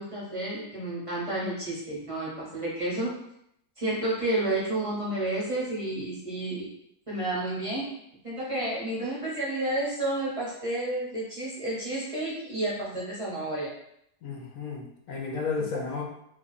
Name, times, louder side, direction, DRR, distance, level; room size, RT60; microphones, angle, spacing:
voice 1, 0.0-3.1 3.8-6.7 7.1-7.8 8.2-13.7, right 1 dB, 25° right, -7 dB, 0.8 m, -31 dB
voice 2, 14.2-16.0, left 4 dB, 65° left, 0 dB, 1.0 m, -33 dB
3.0 x 2.4 x 4.0 m, 0.76 s
omnidirectional pair, 1.7 m